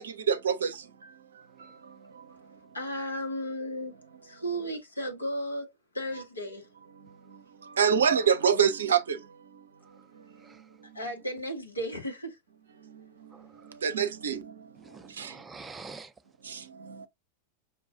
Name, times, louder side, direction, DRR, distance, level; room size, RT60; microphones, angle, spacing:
voice 1, 0.0-2.8 6.9-11.1 12.8-15.5 16.4-17.1, right 7 dB, 70° right, 0.5 m, -30 dB
voice 2, 2.7-3.9 4.2-5.7 6.0-6.6 10.9-12.3, equal, 80° left, 1.2 m, -34 dB
voice 3, 10.3-10.8 13.3-13.7 14.8-16.1, right 4 dB, 15° right, 0.5 m, -48 dB
5.6 x 2.3 x 2.6 m
figure-of-eight pair, 90°, 0 cm